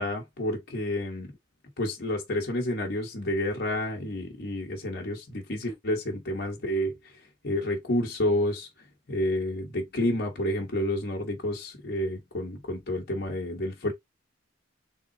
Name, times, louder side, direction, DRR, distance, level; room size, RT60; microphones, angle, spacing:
voice 1, 0.0-1.3 1.8-7.0 7.4-8.7 9.1-13.9, left 1 dB, 55° left, 1.1 m, -29 dB
3.7 x 3.6 x 2.7 m
head